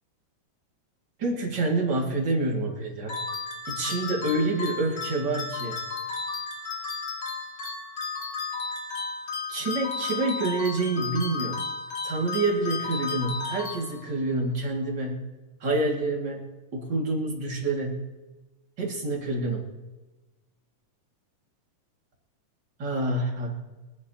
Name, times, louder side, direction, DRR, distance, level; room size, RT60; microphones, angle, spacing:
voice 1, 1.2-3.2 3.7-5.8 9.5-11.6 12.0-15.3 15.6-18.1 18.8-19.7 22.8-23.5, right 2 dB, 35° right, -1 dB, 2.4 m, -27 dB
sound 1, 3.1-14.3, left 4 dB, 75° left, 1.0 m, -34 dB
24.0 x 10.5 x 2.8 m, 1.2 s
omnidirectional pair, 3.9 m